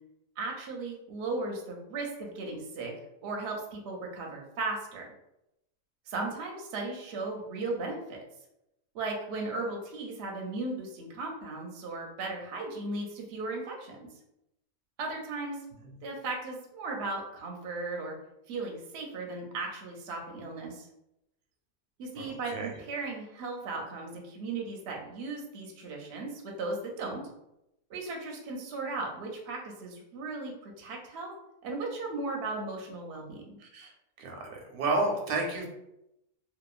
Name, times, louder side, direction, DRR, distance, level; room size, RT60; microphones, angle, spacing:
voice 1, 0.4-2.9 3.2-5.1 6.1-8.2 8.9-14.0 15.0-15.6 16.0-18.2 18.5-20.9 22.0-27.2 27.9-31.3 31.6-33.6, right 3 dB, 60° right, 0 dB, 0.7 m, -36 dB
voice 2, 22.2-22.7 33.6-33.9 34.2-35.7, right 2 dB, 85° right, 1 dB, 1.1 m, -31 dB
2.8 x 2.2 x 2.3 m, 0.85 s
omnidirectional pair, 1.5 m